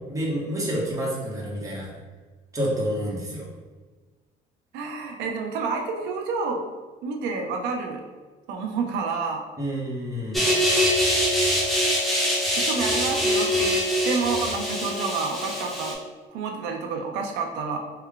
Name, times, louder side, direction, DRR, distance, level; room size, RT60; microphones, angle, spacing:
voice 1, 0.1-1.9 2.5-3.4 9.6-10.5, equal, 20° right, -5 dB, 1.1 m, -28 dB
voice 2, 4.7-6.6 7.0-8.0 8.5-9.4 12.5-16.0 16.3-17.8, right 4 dB, 90° right, 2 dB, 0.5 m, -29 dB
sound 1, 10.3-15.9, equal, ahead, 0.8 m, -23 dB
3.2 x 2.2 x 3.7 m, 1.4 s
cardioid pair, 110°, 17 cm